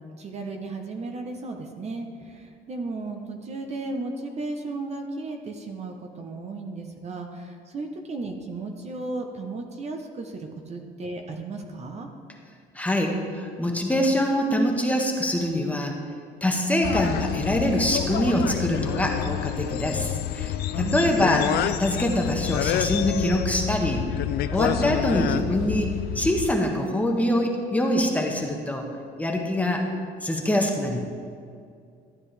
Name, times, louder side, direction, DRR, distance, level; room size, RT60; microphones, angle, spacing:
voice 1, 0.2-12.1 20.7-21.1, right 3 dB, 40° right, 3 dB, 1.0 m, -35 dB
voice 2, 12.7-15.9 16.4-24.1 24.5-28.9 29.2-29.8 30.2-31.0, left 1 dB, 10° left, 1 dB, 1.3 m, -24 dB
sound 1, 16.8-26.5, left 12 dB, 70° left, 0.4 m, -28 dB
13.0 x 9.4 x 3.4 m, 2.3 s
cardioid pair, 110°, 17 cm